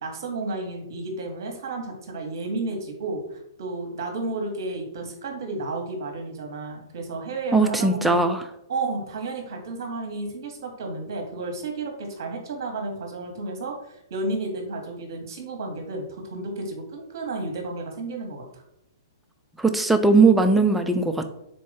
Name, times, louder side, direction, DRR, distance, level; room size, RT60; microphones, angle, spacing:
voice 1, 0.0-8.2 8.7-18.6, right 2 dB, 55° right, 3 dB, 1.0 m, -32 dB
voice 2, 7.5-8.4 19.6-21.2, right 3 dB, 5° right, 6 dB, 0.3 m, -19 dB
3.8 x 2.4 x 3.9 m, 0.82 s
figure-of-eight pair, 120°, 2 cm